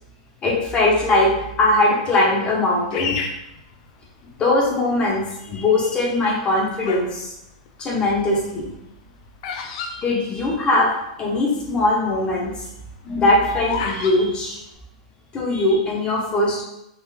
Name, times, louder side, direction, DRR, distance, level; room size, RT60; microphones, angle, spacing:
voice 1, 0.4-1.3 1.6-3.2 4.4-7.3 7.8-8.7 9.9-10.9 11.2-12.5 13.0-14.6 15.3-16.6, left 2 dB, 25° left, -3 dB, 1.1 m, -20 dB
Bird vocalization bird call bird song, 2.9-4.4 5.1-5.5 6.2-7.2 7.5-10.9 11.2-11.3 11.5-11.8 12.3-14.2, left 5 dB, 55° left, 0.5 m, -31 dB
3.9 x 2.9 x 2.8 m, 0.85 s
hypercardioid pair, 135°, 4 cm